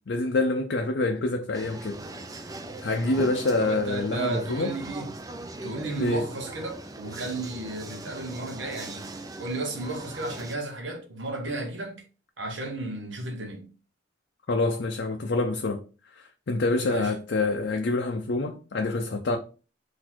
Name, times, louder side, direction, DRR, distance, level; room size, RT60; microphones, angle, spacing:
voice 1, 0.1-2.0 2.8-4.7 6.0-6.2 14.5-15.8 16.2-19.4, left 2 dB, 60° left, 0.5 m, -26 dB
sound 1, 1.5-10.6, right 2 dB, 20° right, 0.4 m, -40 dB
voice 2, 3.6-5.1 5.6-12.0 12.4-13.7 16.8-17.1, right 2 dB, 80° right, 1.2 m, -34 dB
4.1 x 2.6 x 4.4 m
head